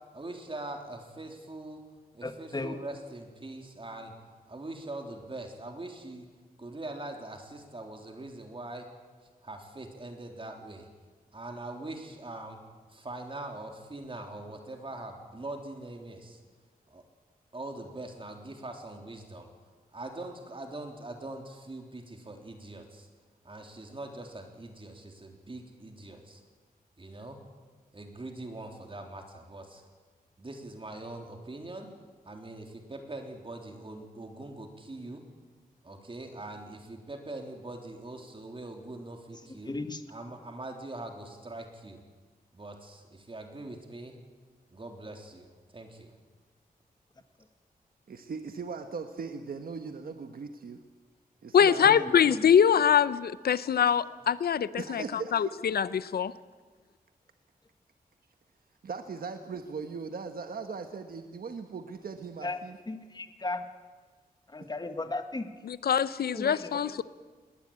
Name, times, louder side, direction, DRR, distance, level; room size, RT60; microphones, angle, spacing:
voice 1, 0.1-1.8 2.1-4.1 4.5-6.3 6.6-8.9 9.4-10.9 11.3-12.6 12.9-16.4 16.9-17.0 17.5-19.5 19.9-23.1 23.4-26.4 27.0-27.4 27.9-29.8 30.4-31.9 32.2-35.2 35.8-39.7 40.1-42.0 42.5-44.2 44.7-45.5 45.7-46.1, right 2 dB, 35° right, 3 dB, 3.5 m, -42 dB
voice 2, 2.2-2.8 39.6-40.0 51.8-52.4 62.4-62.6 62.9-63.6 64.5-65.5 66.3-67.0, left 2 dB, 25° left, 8 dB, 1.8 m, -36 dB
voice 3, 48.1-50.8 51.4-51.9 54.8-55.8 58.8-62.8, right 5 dB, 70° right, 7 dB, 1.3 m, -39 dB
voice 4, 51.5-56.3 65.7-67.0, left 8 dB, 85° left, 16 dB, 0.7 m, -24 dB
20.5 x 19.0 x 8.9 m, 1.4 s
wide cardioid pair, 80°, 16 cm